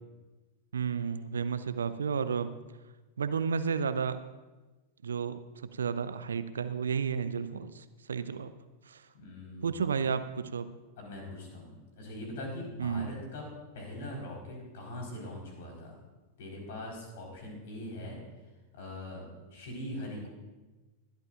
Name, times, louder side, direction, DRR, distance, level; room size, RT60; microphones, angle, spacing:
voice 1, 0.7-2.5 3.2-4.2 5.0-5.4 5.7-8.5 8.9-9.0 9.6-10.7 12.8-13.1, right 6 dB, 70° right, 13 dB, 0.6 m, -32 dB
voice 2, 9.1-9.8 11.0-13.5 13.7-16.0 16.4-18.2 18.7-20.3, left 1 dB, 55° left, 0 dB, 4.3 m, -42 dB
21.0 x 12.0 x 2.5 m, 1.2 s
figure-of-eight pair, 90°, 0 cm